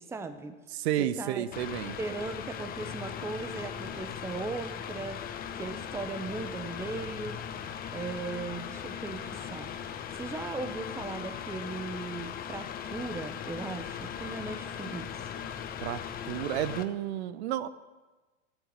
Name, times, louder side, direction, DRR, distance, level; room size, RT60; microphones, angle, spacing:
voice 1, 0.0-0.5 1.0-1.5 2.0-5.3 5.5-7.4 7.9-9.7 10.1-15.2, right 3 dB, 5° right, 9 dB, 0.8 m, -38 dB
voice 2, 0.7-2.0 15.8-16.0 16.3-17.7, right 11 dB, 55° right, 14 dB, 1.0 m, -31 dB
Mechanical fan, 1.5-16.8, left 8 dB, 25° left, 0.9 m, -39 dB
12.0 x 10.5 x 9.6 m, 1.2 s
hypercardioid pair, 110°, 38 cm